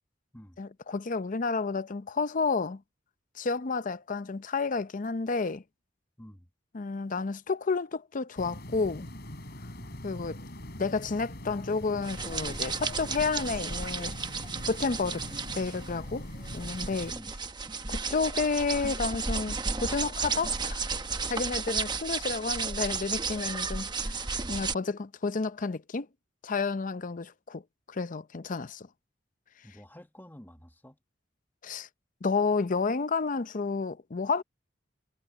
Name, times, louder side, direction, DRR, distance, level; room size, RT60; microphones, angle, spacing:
voice 1, 0.6-2.8 3.4-5.6 6.7-9.1 10.0-10.4 10.8-14.2 14.6-15.2 15.5-16.3 16.5-17.1 17.9-20.9 21.2-26.1 26.4-27.6 27.9-28.9 31.6-31.9 32.2-34.4, left 4 dB, 45° left, 0.6 m, -31 dB
voice 2, 6.2-6.5 9.8-10.0 17.1-17.3 29.6-31.0, equal, 10° left, 1.5 m, -50 dB
sound 1, 8.4-17.1, left 1 dB, 60° left, 3.6 m, -43 dB
sound 2, 12.0-24.7, right 4 dB, 25° right, 1.0 m, -33 dB
head